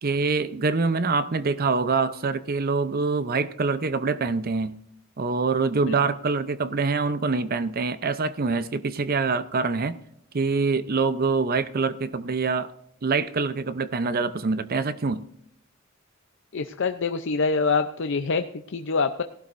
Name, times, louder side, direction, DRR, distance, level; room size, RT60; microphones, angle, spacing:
voice 1, 0.0-4.8 5.2-10.0 10.3-12.7 13.0-15.3, right 4 dB, 45° right, 13 dB, 0.6 m, -25 dB
voice 2, 16.5-19.2, left 4 dB, 65° left, 8 dB, 0.6 m, -25 dB
18.5 x 12.0 x 2.6 m, 0.73 s
head